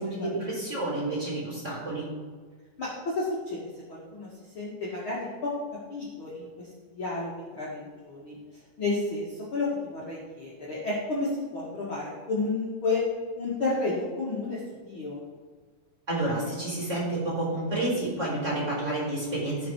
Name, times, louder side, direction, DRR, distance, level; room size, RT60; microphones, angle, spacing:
voice 1, 0.0-2.1 16.1-19.7, right 2 dB, 20° right, -5 dB, 3.8 m, -30 dB
voice 2, 2.8-3.6 3.9-4.3 4.5-5.5 5.9-6.5 6.9-8.3 8.8-13.0 13.4-15.2, left 3 dB, 40° left, -7 dB, 2.3 m, -31 dB
17.5 x 6.1 x 4.7 m, 1.5 s
omnidirectional pair, 4.3 m